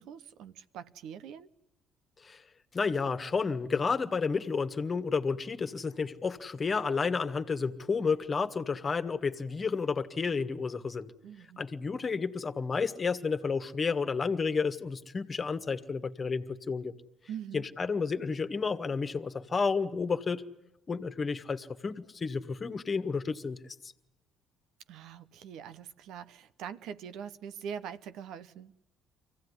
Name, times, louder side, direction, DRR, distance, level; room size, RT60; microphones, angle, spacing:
voice 1, 0.0-1.5 11.2-11.6 17.3-17.6 24.9-28.7, right 8 dB, 70° right, 0.8 m, -43 dB
voice 2, 2.7-11.1 11.6-16.9 17.5-20.4 20.9-23.9, left 5 dB, 35° left, 1.6 m, -31 dB
24.5 x 16.0 x 9.8 m
hypercardioid pair, 60°, 0 cm